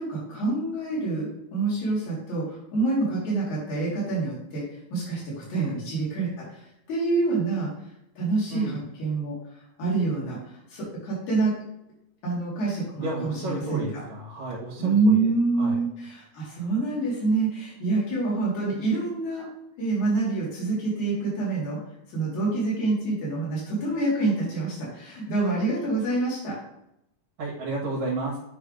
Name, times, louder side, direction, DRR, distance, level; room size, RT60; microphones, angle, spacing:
voice 1, 0.0-7.7 8.2-11.5 12.2-13.9 14.8-19.5 19.8-21.8 22.1-26.6, right 3 dB, 85° left, -7 dB, 3.9 m, -27 dB
voice 2, 8.5-8.8 13.0-15.8 27.4-28.4, right 2 dB, 70° right, -5 dB, 2.7 m, -32 dB
8.2 x 3.4 x 5.1 m, 0.83 s
omnidirectional pair, 3.3 m